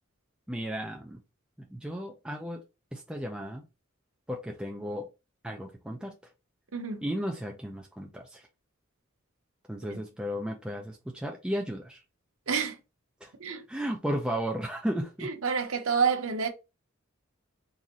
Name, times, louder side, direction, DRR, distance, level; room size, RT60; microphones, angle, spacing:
voice 1, 0.5-1.2 1.7-2.6 2.9-3.6 4.3-5.1 5.4-6.1 7.0-8.4 9.7-12.0 13.2-13.3 13.7-15.3, equal, 5° right, 0.5 m, -34 dB
voice 2, 6.7-7.0 12.5-12.8 13.4-13.6 15.2-16.5, right 6 dB, 90° right, 0.9 m, -28 dB
3.9 x 2.6 x 2.9 m
head